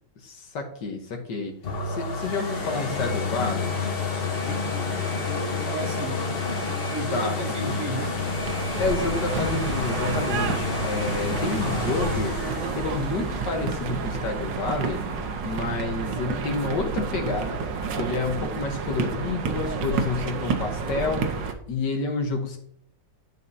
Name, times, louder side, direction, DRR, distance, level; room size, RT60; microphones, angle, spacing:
voice 1, 0.2-1.5 1.9-3.8 7.1-7.8 8.8-12.4 12.7-15.0 15.4-21.3 21.7-22.6, left 4 dB, 65° left, 4 dB, 1.7 m, -29 dB
sound 1, 1.6-15.3 15.9-16.0, left 4 dB, 40° left, 1.0 m, -30 dB
voice 2, 4.4-4.7 5.2-6.2 6.9-8.2, right 4 dB, 50° right, 2 dB, 1.4 m, -34 dB
sound 2, 8.0-21.5, right 5 dB, 70° right, 1.5 m, -30 dB
11.0 x 5.2 x 2.7 m, 0.69 s
omnidirectional pair, 2.2 m